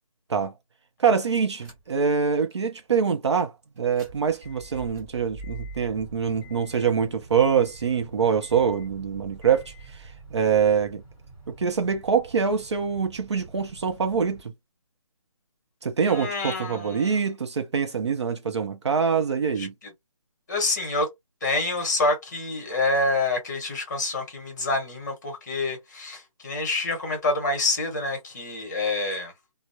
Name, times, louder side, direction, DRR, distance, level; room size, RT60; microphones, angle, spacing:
voice 1, 1.0-3.5 3.8-11.0 11.5-14.5 15.8-19.7, right 6 dB, 50° right, 0.5 m, -24 dB
sound 1, 1.6-2.1 2.5-2.6 3.8-14.4, right 2 dB, 30° right, 1.2 m, -45 dB
voice 2, 16.1-17.2 19.6-19.9 20.5-21.1 21.4-29.3, left 2 dB, 30° left, 1.0 m, -27 dB
2.2 x 2.0 x 2.7 m
hypercardioid pair, 175°, 18 cm